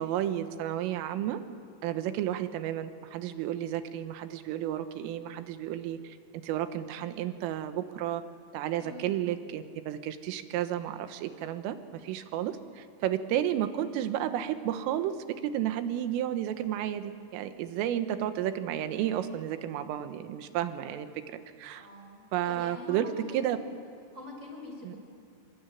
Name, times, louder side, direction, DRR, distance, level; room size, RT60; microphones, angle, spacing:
voice 1, 0.0-1.4 1.8-8.2 8.5-11.8 12.0-21.9 22.3-23.1 23.3-23.6 24.9-25.0, right 11 dB, 85° right, 9 dB, 3.8 m, -32 dB
voice 2, 21.7-23.7 24.1-25.0, left 2 dB, 15° right, 0 dB, 6.0 m, -45 dB
26.0 x 24.5 x 9.3 m, 2.3 s
omnidirectional pair, 5.7 m